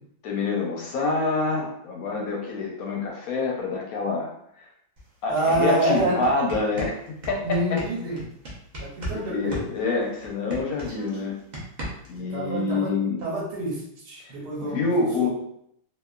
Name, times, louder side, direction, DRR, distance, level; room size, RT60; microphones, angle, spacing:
voice 1, 0.2-4.3 5.2-7.0 7.3-7.8 9.1-11.4 12.1-13.2 14.2-14.3 14.6-15.3, left 3 dB, 70° left, -1 dB, 0.9 m, -26 dB
sound 1, 5.0-5.1 5.3-9.2 9.5-12.2, right 1 dB, 45° right, 0.5 m, -36 dB
voice 2, 5.3-6.2 7.4-8.2 8.8-9.6 12.3-12.9 13.2-14.9 15.2-15.3, right 1 dB, 90° right, -2 dB, 1.5 m, -27 dB
2.8 x 2.4 x 2.3 m, 0.72 s
omnidirectional pair, 1.8 m